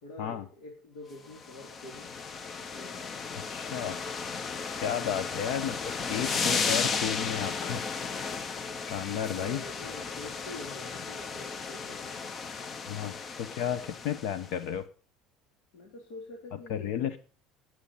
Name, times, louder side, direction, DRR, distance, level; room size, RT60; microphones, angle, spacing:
voice 1, 0.0-2.1 2.6-3.0 9.3-12.2 15.7-16.9, left 2 dB, 85° left, 0 dB, 3.6 m, -46 dB
sound 1, 1.3-14.5, left 5 dB, 25° left, 0.6 m, -34 dB
voice 2, 3.4-4.0 4.8-5.7 6.1-7.8 8.9-9.6 12.9-14.9 16.7-17.2, left 9 dB, 65° left, 12 dB, 0.9 m, -33 dB
18.5 x 7.9 x 5.6 m, 0.40 s
cardioid pair, 170°, 0 cm